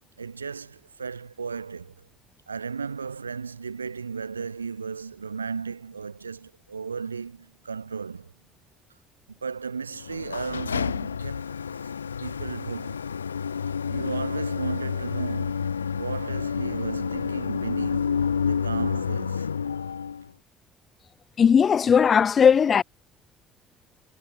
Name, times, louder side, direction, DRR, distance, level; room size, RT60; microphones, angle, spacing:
voice 1, 0.2-1.9 2.5-8.3 9.4-11.6 12.2-13.0 13.8-19.5, right 5 dB, 90° right, 3.8 m, -35 dB
sound 1, 10.0-20.3, left 6 dB, 90° left, 0.5 m, -29 dB
voice 2, 21.4-22.8, left 7 dB, 40° left, 2.0 m, -18 dB
figure-of-eight pair, 50°, 0 cm